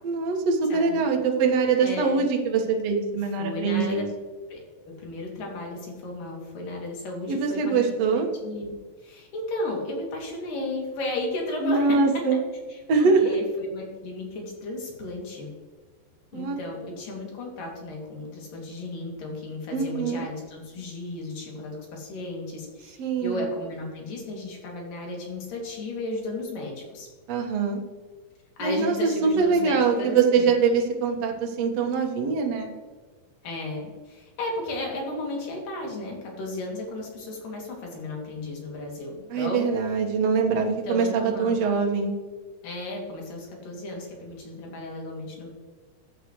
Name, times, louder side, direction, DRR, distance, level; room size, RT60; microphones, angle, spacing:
voice 1, 0.0-4.1 7.3-8.3 11.6-12.4 12.9-13.3 16.3-16.6 19.7-20.2 23.0-23.5 27.3-27.8 28.6-32.7 39.3-42.1, right 5 dB, 55° right, 1 dB, 2.1 m, -23 dB
voice 2, 0.7-1.1 1.8-2.2 3.2-4.0 4.5-7.8 8.2-8.7 9.0-12.2 12.7-15.5 16.3-27.1 28.6-30.5 33.4-39.7 40.7-41.6 42.6-45.5, left 2 dB, 60° left, -1 dB, 4.2 m, -34 dB
14.0 x 9.4 x 3.2 m, 1.4 s
omnidirectional pair, 4.6 m